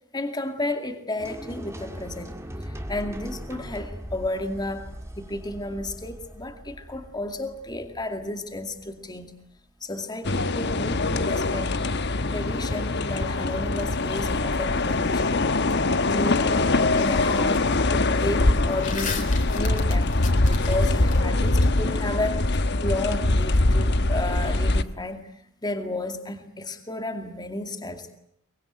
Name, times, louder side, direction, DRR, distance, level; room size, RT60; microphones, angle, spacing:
voice 1, 0.1-9.4 9.8-11.7 12.3-15.3 16.1-20.1 20.4-25.3 25.6-28.1, left 1 dB, 20° left, 7 dB, 2.3 m, -32 dB
sound 1, 1.2-9.2, equal, 15° right, 2.3 m, -40 dB
sound 2, 10.2-24.8, left 2 dB, 55° left, 1.1 m, -23 dB
sound 3, 12.9-14.2 16.4-16.5 16.9-17.7 18.0-21.2, left 5 dB, 40° left, 3.4 m, -37 dB
23.5 x 22.5 x 9.2 m, 0.76 s
head